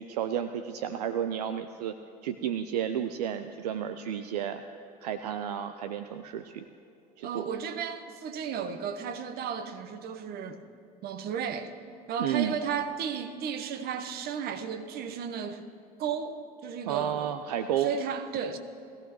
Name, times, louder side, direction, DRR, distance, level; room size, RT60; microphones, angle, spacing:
voice 1, 0.0-1.9 2.2-4.6 5.0-6.7 7.2-7.5 12.2-12.5 16.9-17.9, right 9 dB, 75° right, 0.5 m, -32 dB
voice 2, 7.2-10.6 11.0-11.7 12.1-15.6 16.0-17.3 17.8-18.6, right 7 dB, 50° right, 1.1 m, -34 dB
21.0 x 15.5 x 3.1 m
hypercardioid pair, 65°, 20 cm